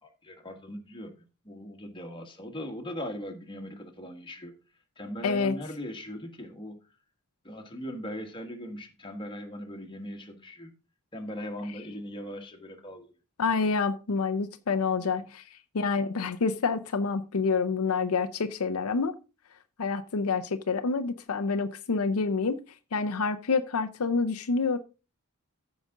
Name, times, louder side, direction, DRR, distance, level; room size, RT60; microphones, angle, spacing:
voice 1, 0.0-4.6 5.0-6.8 7.4-10.7 11.1-13.1 15.0-15.3, equal, 25° left, 1.5 m, -40 dB
voice 2, 5.2-5.5 13.4-15.4 15.7-19.1 19.8-22.6 22.9-24.8, left 4 dB, 80° left, 0.6 m, -27 dB
14.5 x 5.1 x 3.7 m
head